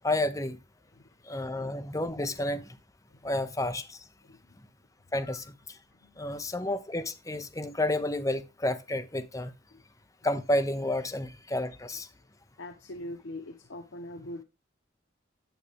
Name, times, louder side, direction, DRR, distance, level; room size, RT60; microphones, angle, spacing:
voice 1, 0.0-0.6 1.2-2.8 3.2-4.0 5.1-5.8 6.2-9.5 10.2-12.1, left 1 dB, 15° left, 0.7 m, -30 dB
voice 2, 4.2-4.6 5.9-6.3 9.7-9.8 12.6-14.4, left 1 dB, 85° left, 0.9 m, -43 dB
9.0 x 6.6 x 3.4 m
head